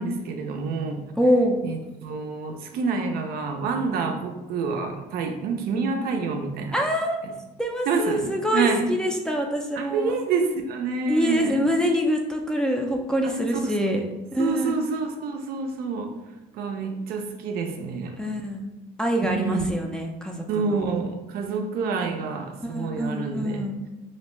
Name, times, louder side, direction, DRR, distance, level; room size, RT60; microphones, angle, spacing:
voice 1, 0.0-1.0 1.6-6.7 7.9-8.9 9.8-11.6 13.2-13.3 13.6-13.8 14.4-16.1 16.5-18.2 19.3-19.7 20.5-23.6, right 4 dB, 65° right, 4 dB, 0.4 m, -28 dB
voice 2, 1.2-1.6 6.7-7.2 7.6-10.1 11.1-14.0 14.3-14.8 18.2-18.7 19.0-20.9 22.6-23.8, equal, 5° left, 0 dB, 0.4 m, -25 dB
2.6 x 2.1 x 3.0 m, 1.0 s
supercardioid pair, 85°, 17 cm